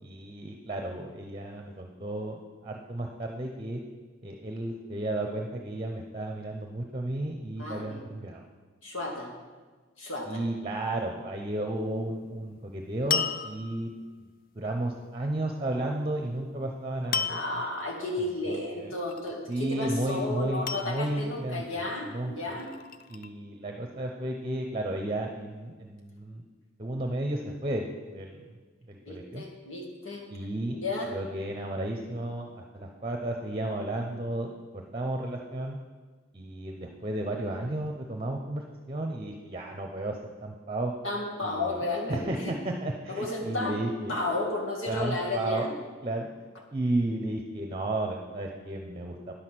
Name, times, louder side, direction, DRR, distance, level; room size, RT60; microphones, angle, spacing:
voice 1, 0.0-3.8 4.2-8.5 10.3-13.9 14.2-14.3 14.5-17.4 18.4-18.6 19.5-22.5 23.1-26.4 26.8-28.5 28.9-29.4 30.3-30.8 31.1-35.8 36.3-40.9 41.4-41.8 42.1-44.2 44.9-45.7 46.0-46.3 46.7-49.3, right 1 dB, 25° right, 2 dB, 0.8 m, -33 dB
voice 2, 7.5-8.0 8.8-9.3 10.0-10.5 17.3-22.8 29.0-30.2 30.7-31.2 41.0-42.5 43.1-45.7, left 2 dB, 80° left, -1 dB, 2.2 m, -33 dB
sound 1, 13.1-14.0 17.1-17.7 19.1-19.6 20.7-21.4 22.4-23.3, left 6 dB, 45° left, 0.4 m, -32 dB
10.0 x 6.4 x 7.6 m, 1.4 s
head